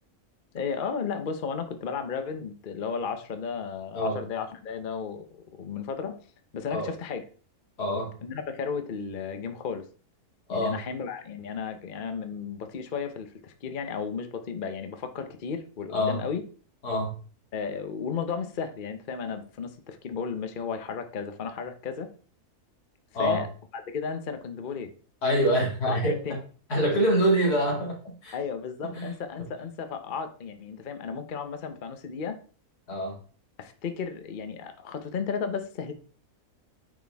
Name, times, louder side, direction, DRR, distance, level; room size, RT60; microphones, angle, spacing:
voice 1, 0.5-5.3 5.6-6.2 6.5-7.2 8.2-9.8 10.5-16.4 17.5-22.1 23.2-23.5 23.9-24.9 25.8-26.4 28.3-32.4 33.6-35.9, left 6 dB, 40° left, 7 dB, 0.8 m, -34 dB
voice 2, 7.8-8.1 10.5-10.8 15.9-16.2 16.8-17.1 23.1-23.4 25.2-26.4 26.7-28.4 28.9-29.1 32.9-33.2, equal, 85° left, -1 dB, 2.7 m, -25 dB
9.4 x 4.3 x 3.5 m, 0.39 s
omnidirectional pair, 1.6 m